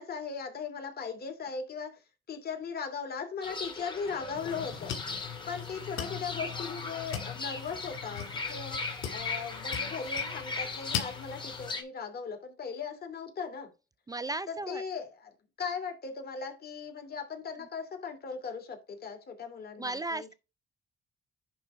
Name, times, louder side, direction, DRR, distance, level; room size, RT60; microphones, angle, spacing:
voice 1, 0.0-2.0 2.3-4.9 5.5-13.7 14.5-20.3, left 5 dB, 50° left, 2.8 m, -38 dB
Fowl / Bird, 3.4-11.8, left 3 dB, 25° left, 2.5 m, -38 dB
sound 1, 4.3-11.7, left 9 dB, 90° left, 2.0 m, -40 dB
voice 2, 14.1-14.8 19.8-20.3, right 2 dB, 20° right, 0.4 m, -35 dB
10.5 x 3.8 x 4.6 m
cardioid pair, 90°, 20 cm